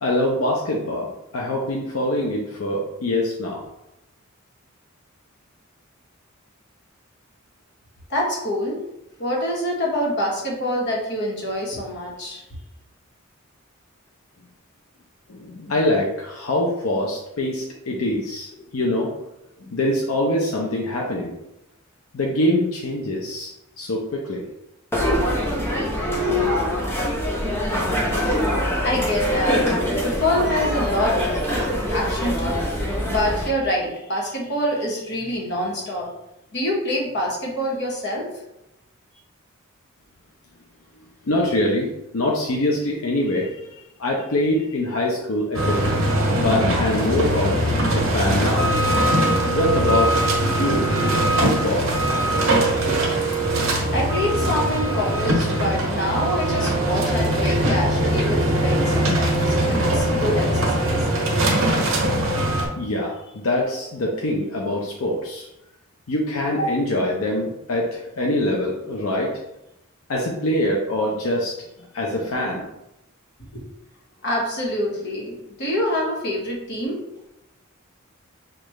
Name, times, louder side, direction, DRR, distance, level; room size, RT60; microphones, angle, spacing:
voice 1, 0.0-3.6 15.3-18.5 18.7-19.1 19.6-21.3 22.1-23.5 23.8-24.4 41.3-41.9 42.1-43.6 44.0-45.8 46.4-47.6 47.9-48.7 49.5-50.1 50.4-51.9 62.8-65.5 66.1-69.3 70.1-71.5 71.9-72.6, left 1 dB, 85° left, -1 dB, 0.6 m, -24 dB
voice 2, 8.1-8.8 9.2-12.4 28.8-31.2 31.5-32.6 33.1-36.1 36.5-38.3 53.9-61.1 73.5-73.6 74.2-75.3 75.6-77.0, left 1 dB, 55° left, -2 dB, 1.3 m, -26 dB
sound 1, 24.9-33.5, equal, 10° left, 0.8 m, -23 dB
sound 2, 45.5-62.7, right 1 dB, 70° right, 1.3 m, -21 dB
6.6 x 2.5 x 3.1 m, 0.89 s
head